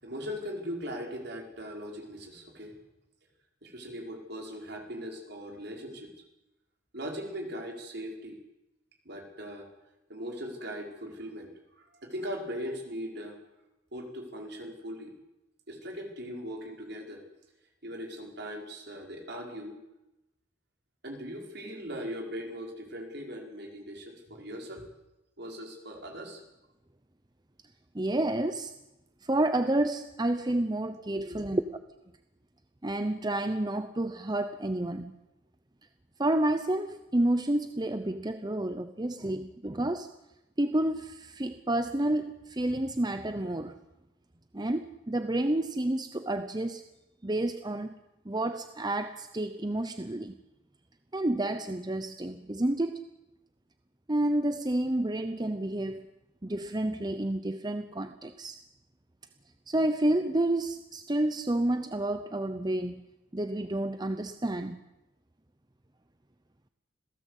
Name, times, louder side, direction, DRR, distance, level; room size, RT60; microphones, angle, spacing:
voice 1, 0.0-2.7 3.6-6.1 6.9-8.4 9.0-9.7 10.1-13.4 13.9-15.1 15.7-17.2 17.8-19.7 21.0-24.9 25.4-26.4 31.1-31.4, equal, 55° right, 2 dB, 5.0 m, -39 dB
voice 2, 27.9-28.7 29.2-31.6 32.8-35.2 36.2-40.1 40.6-43.8 44.5-46.8 47.2-48.0 48.2-50.4 51.1-53.0 54.1-56.1 56.4-58.6 59.7-63.0 63.3-64.8, right 1 dB, 20° right, 9 dB, 0.8 m, -30 dB
26.5 x 17.0 x 8.3 m, 0.94 s
head